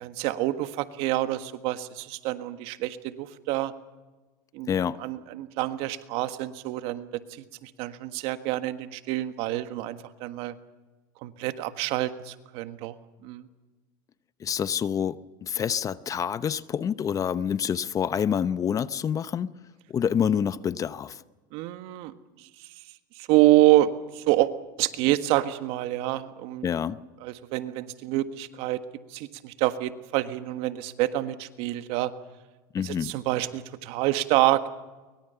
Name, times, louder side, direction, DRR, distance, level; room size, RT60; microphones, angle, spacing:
voice 1, 0.0-3.7 4.5-4.7 5.0-10.5 11.2-12.9 13.2-13.4 21.5-22.1 23.2-24.5 24.8-26.7 27.2-28.8 29.1-32.1 32.8-34.6, right 16 dB, 65° right, 1.6 m, -27 dB
voice 2, 4.7-5.0 14.4-19.5 19.9-21.2 26.6-27.0 32.7-33.1, left 8 dB, 30° left, 0.9 m, -27 dB
24.0 x 21.5 x 6.9 m
supercardioid pair, 100°, 11 cm